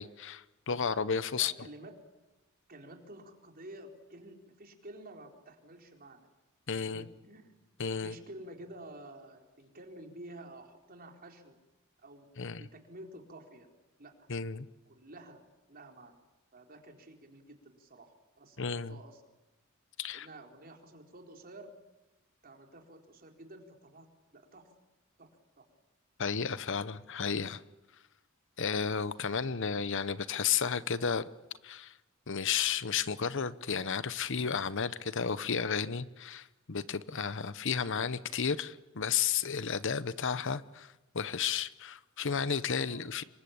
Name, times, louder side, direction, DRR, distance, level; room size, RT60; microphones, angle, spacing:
voice 1, 0.0-1.5 6.7-7.0 7.8-8.1 12.4-12.6 14.3-14.7 18.6-19.0 20.0-20.3 26.2-27.6 28.6-31.3 31.6-31.9 32.3-43.2, left 6 dB, 60° left, 15 dB, 0.9 m, -33 dB
voice 2, 1.4-2.0 2.7-6.2 6.7-7.6 8.0-11.6 12.0-12.3 12.6-13.7 14.0-14.1 14.9-15.4 15.7-16.1 16.5-19.2 20.1-21.7 22.4-24.1 24.3-24.7 25.2-25.3 25.6-25.7 42.8-43.1, right 1 dB, 45° right, 3 dB, 4.2 m, -50 dB
27.0 x 23.0 x 8.7 m, 1.0 s
head